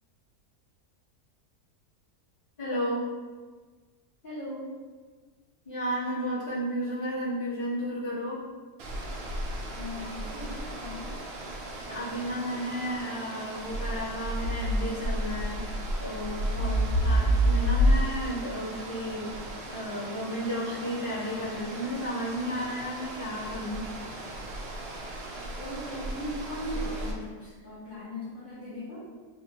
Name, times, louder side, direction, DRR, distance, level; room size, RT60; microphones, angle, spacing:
voice 1, 2.6-3.1 5.6-8.4 11.9-15.6 16.0-16.8 17.0-19.3 19.7-23.8, equal, 20° left, -12 dB, 1.2 m, -33 dB
voice 2, 4.2-4.7 9.7-11.2 16.6-16.8 25.5-29.1, left 1 dB, 35° left, -13 dB, 1.1 m, -38 dB
sound 1, 8.8-27.1, equal, 80° right, 0.5 m, -31 dB
3.6 x 2.4 x 2.9 m, 1.4 s
omnidirectional pair, 1.7 m